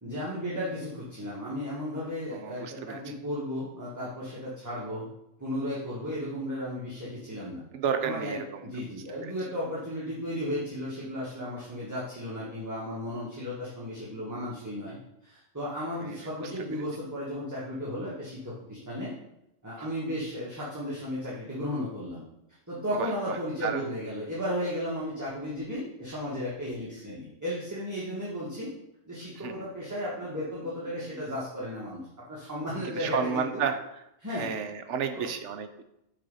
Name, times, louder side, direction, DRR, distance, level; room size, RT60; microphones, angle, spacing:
voice 1, 0.0-5.1 5.4-7.6 8.0-8.3 8.6-15.0 15.2-19.1 19.6-22.2 22.7-28.7 29.0-33.6 34.2-34.5 35.1-35.3, equal, 15° right, -8 dB, 1.4 m, -34 dB
voice 2, 2.3-3.0 7.7-8.6 9.2-9.3 16.0-16.8 23.0-23.8 29.4-29.5 32.9-33.8 34.3-35.8, right 7 dB, 70° right, 8 dB, 0.9 m, -32 dB
6.6 x 4.1 x 5.4 m, 0.85 s
omnidirectional pair, 1.4 m